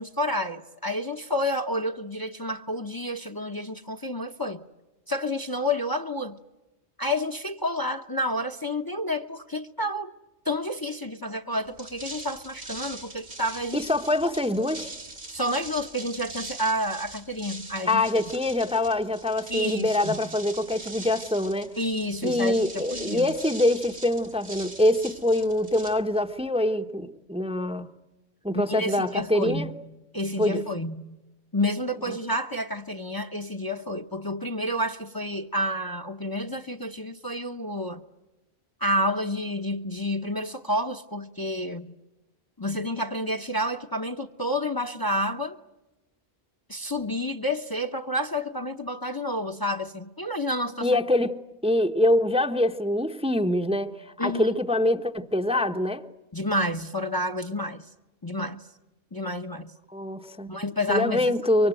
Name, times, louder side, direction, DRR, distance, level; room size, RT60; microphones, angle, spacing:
voice 1, 0.0-4.6 5.1-6.4 7.0-10.1 10.4-13.8 15.3-18.0 19.5-20.3 21.8-23.3 28.7-29.7 30.1-31.2 31.5-38.0 38.8-41.9 42.6-45.6 46.7-50.9 54.2-54.6 56.3-57.8 58.2-58.6 59.1-59.7 60.5-61.3, left 1 dB, 20° left, 0.9 m, -29 dB
sound 1, 11.7-26.5, right 2 dB, 80° right, 2.3 m, -42 dB
voice 2, 13.7-14.9 17.9-21.7 22.2-27.9 28.4-29.7 30.4-30.6 32.1-32.2 50.8-56.0 59.9-60.6 60.9-61.7, left 1 dB, 5° right, 0.9 m, -24 dB
24.5 x 24.0 x 9.1 m
omnidirectional pair, 1.1 m